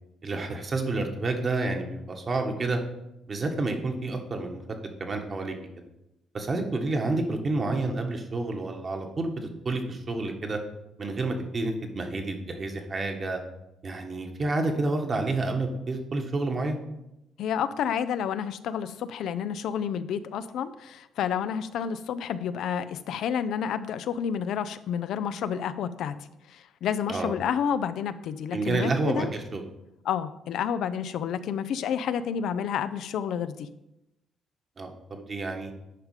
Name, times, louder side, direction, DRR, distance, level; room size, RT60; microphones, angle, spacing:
voice 1, 0.2-2.8 3.3-4.6 5.0-5.5 6.3-10.6 11.0-13.4 13.8-16.8 27.1-27.3 28.5-29.6 34.8-35.7, right 2 dB, 40° right, 4 dB, 1.5 m, -29 dB
voice 2, 17.4-26.1 26.5-29.3 30.0-33.7, left 8 dB, 80° left, 12 dB, 0.5 m, -30 dB
9.9 x 4.9 x 4.9 m, 0.89 s
cardioid pair, 90°, 0 cm